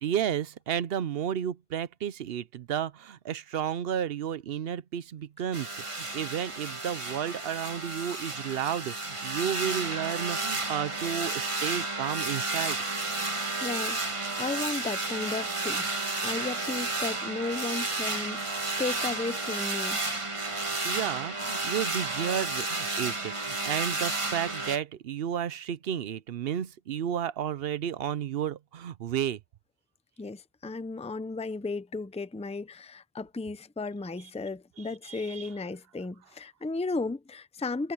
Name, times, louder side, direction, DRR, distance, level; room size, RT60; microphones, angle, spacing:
voice 1, 0.0-12.8 20.5-29.4 34.8-35.5, right 9 dB, 70° right, 0.8 m, -32 dB
sound 1, 5.5-24.8, right 2 dB, 30° right, 1.6 m, -32 dB
voice 2, 13.6-14.0 14.4-15.9 16.2-20.0 30.2-37.9, left 3 dB, 10° left, 0.6 m, -34 dB
omnidirectional pair, 1.0 m